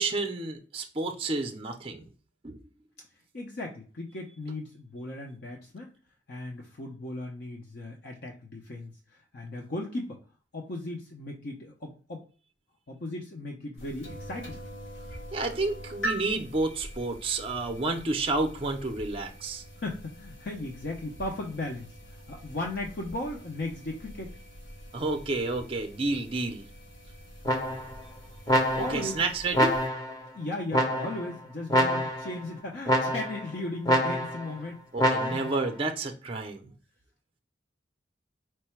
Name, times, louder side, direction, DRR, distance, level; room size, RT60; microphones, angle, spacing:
voice 1, 0.0-2.1 2.4-2.6 15.3-19.6 24.9-26.6 28.8-29.8 34.9-36.7, right 3 dB, 30° right, 5 dB, 0.5 m, -30 dB
voice 2, 3.3-5.9 6.3-8.9 9.3-10.2 10.5-12.3 12.9-14.6 19.8-24.4 28.8-29.2 30.3-34.8 35.3-35.5, left 2 dB, 55° left, 0 dB, 0.6 m, -36 dB
sound 1, 13.8-29.9, right 1 dB, 75° left, 2.1 m, -43 dB
sound 2, 27.4-28.0 28.5-29.1 29.5-30.2 30.7-31.3 31.7-32.3 32.9-33.5 33.9-34.5 35.0-35.6, equal, 20° left, 0.7 m, -26 dB
4.5 x 2.2 x 4.3 m, 0.38 s
head